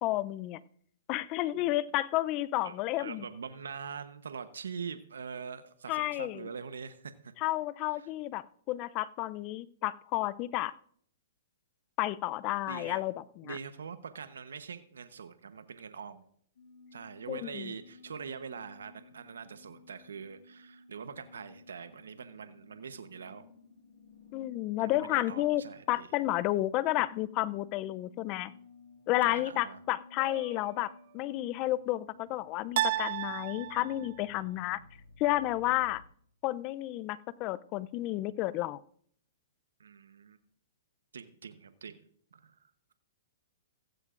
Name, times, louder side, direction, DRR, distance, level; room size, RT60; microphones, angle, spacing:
voice 1, 0.0-0.6 1.1-3.3 5.9-6.5 7.4-10.7 12.0-13.6 17.3-17.7 24.3-28.5 29.1-34.8 35.2-36.0 36.4-38.8, left 16 dB, 35° left, 19 dB, 0.5 m, -31 dB
voice 2, 2.6-7.3 7.9-8.1 12.7-13.0 13.4-16.2 16.9-23.4 24.8-26.1 29.2-29.8 39.8-40.4 41.1-42.0 42.3-42.9, right 6 dB, 85° right, 10 dB, 0.9 m, -44 dB
sound 1, 16.6-36.1, left 4 dB, 80° left, 2.2 m, -57 dB
sound 2, 30.2-30.9 32.8-34.2, right 14 dB, 55° right, 0.4 m, -34 dB
15.5 x 14.5 x 2.5 m, 0.62 s
hypercardioid pair, 135°, 0 cm